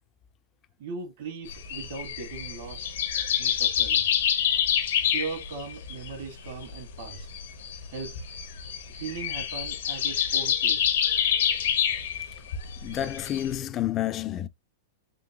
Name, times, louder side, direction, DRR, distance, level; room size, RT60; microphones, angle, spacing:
voice 1, 0.8-2.9 3.4-4.1 5.1-7.3 7.9-8.1 8.9-10.9, right 4 dB, 65° right, 1.5 m, -38 dB
sound 1, 1.5-13.6, left 9 dB, 75° left, 1.0 m, -27 dB
voice 2, 12.8-14.5, left 12 dB, 25° left, 0.4 m, -29 dB
3.8 x 3.0 x 2.9 m
supercardioid pair, 155°, 0 cm